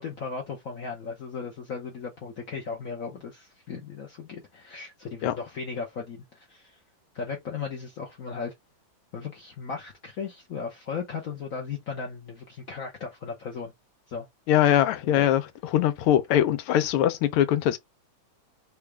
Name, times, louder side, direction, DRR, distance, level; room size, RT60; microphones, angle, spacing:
voice 1, 0.0-6.8 7.1-8.5 9.1-13.7 14.1-14.3 15.0-15.3, left 5 dB, 65° left, 0.8 m, -36 dB
voice 2, 14.5-17.8, left 11 dB, 90° left, 1.5 m, -22 dB
3.9 x 2.4 x 3.2 m
omnidirectional pair, 2.3 m